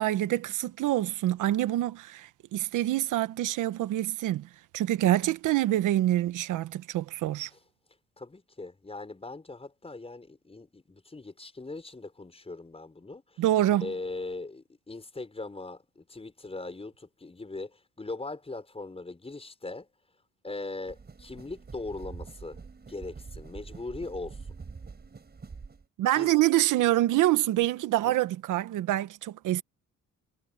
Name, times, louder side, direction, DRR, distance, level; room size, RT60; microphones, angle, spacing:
voice 1, 0.0-4.5 4.7-7.5 13.4-13.9 26.0-29.6, right 14 dB, 85° right, 1.2 m, -26 dB
voice 2, 8.2-13.4 13.8-19.9 20.4-22.6 22.9-24.6 26.1-26.3 28.0-28.2, left 3 dB, 20° left, 5.3 m, -40 dB
sound 1, 20.9-25.9, right 4 dB, 35° right, 6.6 m, -45 dB
cardioid pair, 90°, 30 cm